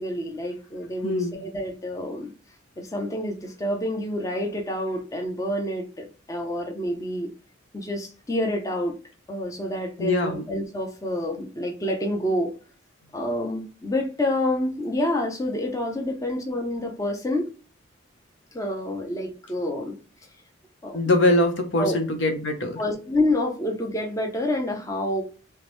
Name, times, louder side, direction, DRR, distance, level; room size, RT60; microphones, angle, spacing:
voice 1, 0.0-2.3 2.8-7.3 7.7-9.0 9.3-12.5 13.1-17.5 18.5-20.0 20.8-21.1 21.8-22.0 22.8-25.2, left 1 dB, 15° left, 0.6 m, -28 dB
voice 2, 1.0-1.4 10.0-10.4 20.9-22.8, left 2 dB, 65° left, 0.9 m, -22 dB
3.4 x 3.0 x 3.1 m
head